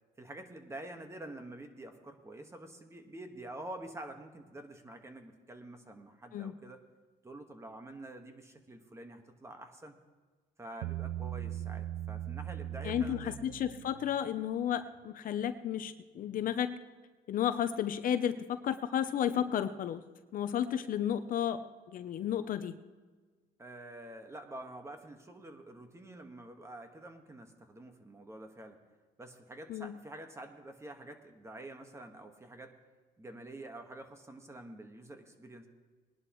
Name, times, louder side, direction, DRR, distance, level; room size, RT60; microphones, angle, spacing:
voice 1, 0.2-6.8 7.2-10.0 10.6-13.4 23.6-28.8 29.2-32.7 33.2-35.7, right 1 dB, 15° right, 5 dB, 1.6 m, -47 dB
Bass guitar, 10.8-14.2, right 12 dB, 90° right, 0.4 m, -39 dB
voice 2, 12.8-16.8 17.3-20.0 20.3-21.6 21.9-22.7 29.7-29.9, left 9 dB, 55° left, 11 dB, 0.7 m, -32 dB
20.5 x 11.0 x 3.1 m, 1.4 s
cardioid pair, 110°, 17 cm